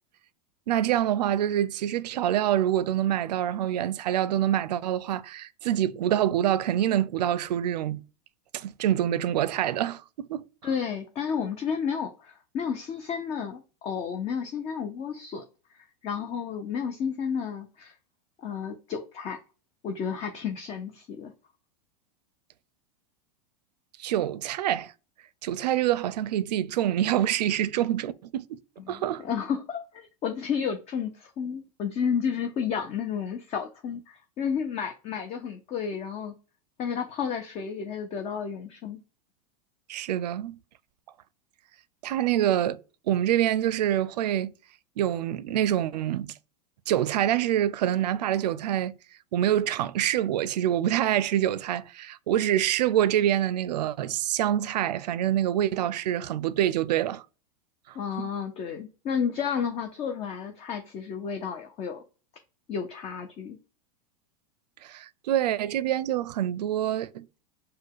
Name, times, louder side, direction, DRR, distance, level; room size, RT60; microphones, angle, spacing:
voice 1, 0.7-8.0 8.5-10.4 24.0-24.9 25.4-28.6 28.9-29.2 39.9-40.6 42.0-42.8 43.1-44.5 45.0-46.3 46.9-48.9 49.3-57.2 57.9-58.3 64.8-67.3, right 11 dB, 85° right, 0.4 m, -26 dB
voice 2, 10.6-15.4 15.7-17.9 18.4-19.4 19.8-21.3 28.9-36.3 36.8-39.0 58.0-62.0 62.7-63.6, left 7 dB, 30° left, 0.5 m, -32 dB
4.4 x 2.2 x 4.6 m
supercardioid pair, 125°, 21 cm